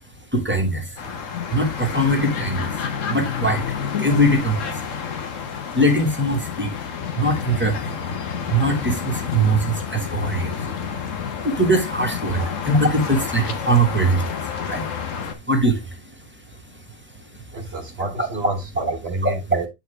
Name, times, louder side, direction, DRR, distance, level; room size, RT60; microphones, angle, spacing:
voice 1, 0.3-1.1 1.5-2.7 3.1-3.6 4.0-4.8 5.7-6.7 7.1-8.0 8.5-10.7 11.4-14.4 14.6-14.9 15.5-16.0 18.2-18.3 19.2-19.3, right 1 dB, 10° right, 1.4 m, -21 dB
sound 1, 1.0-15.3, left 7 dB, 70° left, 1.3 m, -29 dB
voice 2, 17.5-19.7, right 2 dB, 50° right, 1.3 m, -29 dB
8.8 x 4.2 x 3.2 m
omnidirectional pair, 1.4 m